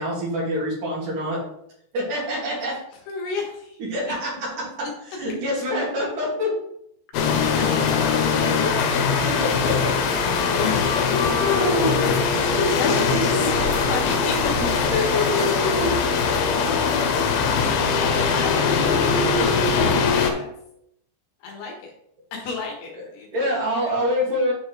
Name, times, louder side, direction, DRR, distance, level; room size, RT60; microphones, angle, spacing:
voice 1, 0.0-1.4 1.9-2.7 3.9-4.3 5.2-6.5 8.6-8.7 9.2-9.9 11.1-12.0 12.4-12.7 13.1-13.2 14.6-16.0 23.3-24.5, left 1 dB, 50° right, -5 dB, 3.3 m, -25 dB
voice 2, 2.6-3.8 7.6-9.2 11.2-14.9 17.6-19.4 19.7-20.5 21.4-21.9 22.3-24.1, left 4 dB, 65° left, 0 dB, 3.1 m, -35 dB
sound 1, 7.1-20.3, left 5 dB, 85° left, 3.2 m, -21 dB
9.9 x 4.6 x 3.2 m, 0.74 s
omnidirectional pair, 5.3 m